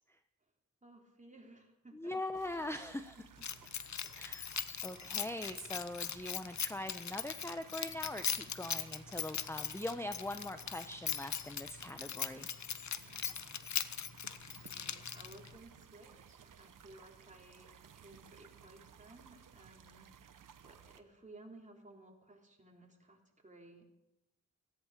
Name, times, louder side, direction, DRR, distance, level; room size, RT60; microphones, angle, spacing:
voice 1, 0.8-2.1 3.3-3.4 14.7-20.1 20.6-24.0, right 2 dB, 25° right, 0 dB, 3.5 m, -57 dB
voice 2, 1.9-3.2 4.1-4.5 4.8-12.5, left 1 dB, 10° left, 8 dB, 0.8 m, -42 dB
sound 1, 2.3-21.0, right 8 dB, 85° right, 0.9 m, -59 dB
Keys jangling, 3.4-15.5, left 8 dB, 65° left, 0.8 m, -40 dB
16.5 x 14.5 x 5.0 m, 0.94 s
cardioid pair, 60°, 31 cm